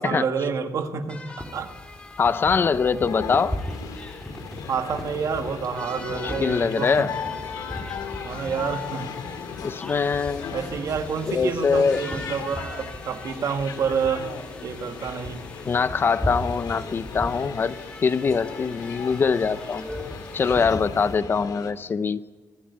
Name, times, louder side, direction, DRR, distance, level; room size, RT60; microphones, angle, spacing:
voice 1, 0.0-1.7 4.7-7.1 8.2-9.3 10.5-14.3 14.6-15.5, right 6 dB, 60° right, 7 dB, 1.8 m, -28 dB
sound 1, 1.1-20.6, left 2 dB, 20° left, 2.4 m, -44 dB
sound 2, 1.4-21.2, equal, ahead, 2.6 m, -38 dB
voice 2, 2.2-3.6 6.1-7.1 9.6-10.6 11.3-12.0 15.7-19.9 20.3-22.2, left 5 dB, 35° left, 14 dB, 0.7 m, -23 dB
sound 3, 3.1-21.7, left 6 dB, 80° left, 2.3 m, -38 dB
25.0 x 12.5 x 9.6 m, 1.3 s
wide cardioid pair, 155°, 6 cm